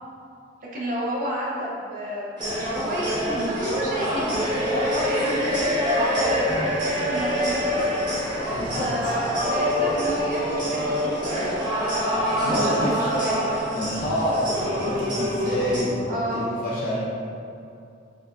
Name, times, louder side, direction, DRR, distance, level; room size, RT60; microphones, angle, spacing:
voice 1, 0.6-6.4 6.9-8.4 8.8-11.7 12.0-14.0 16.1-16.4, equal, 45° right, -5 dB, 0.6 m, -31 dB
sound 1, 2.4-15.8, equal, 25° right, 0.9 m, -25 dB
voice 2, 8.5-8.8 12.4-12.9 13.7-17.1, equal, 50° left, -9 dB, 0.6 m, -27 dB
4.6 x 2.3 x 2.3 m, 2.5 s
head